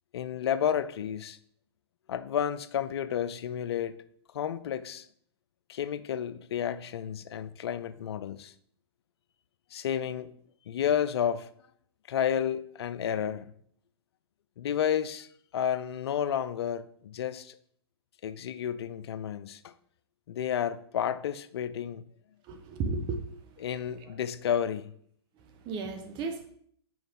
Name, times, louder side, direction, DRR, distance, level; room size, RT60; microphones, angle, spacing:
voice 1, 0.1-1.4 2.1-4.0 4.3-5.1 5.7-8.5 9.7-10.3 10.7-11.5 12.1-13.5 14.6-17.6 18.2-19.7 20.3-22.0 23.6-24.9, left 9 dB, 70° left, 0.5 m, -31 dB
voice 2, 22.4-23.5 24.0-24.1 25.4-26.5, right 4 dB, 35° right, 1.2 m, -35 dB
6.2 x 4.6 x 5.3 m
hypercardioid pair, 120°, 14 cm